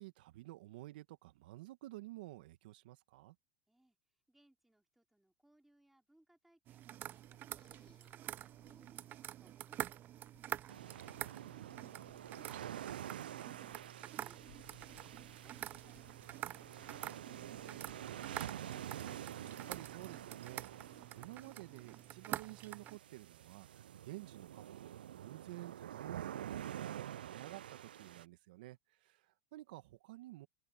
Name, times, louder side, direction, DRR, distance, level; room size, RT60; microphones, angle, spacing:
voice 1, 0.0-3.4 11.6-12.2 19.3-30.5, right 18 dB, 70° right, 1.8 m, -52 dB
voice 2, 3.7-11.2, right 1 dB, 5° right, 3.7 m, -72 dB
sound 1, 6.7-23.0, right 13 dB, 40° right, 0.7 m, -47 dB
sound 2, 7.0-22.1, left 14 dB, 80° left, 4.5 m, -72 dB
sound 3, 10.7-28.2, right 11 dB, 85° right, 0.3 m, -48 dB
open air
hypercardioid pair, 105°, 5 cm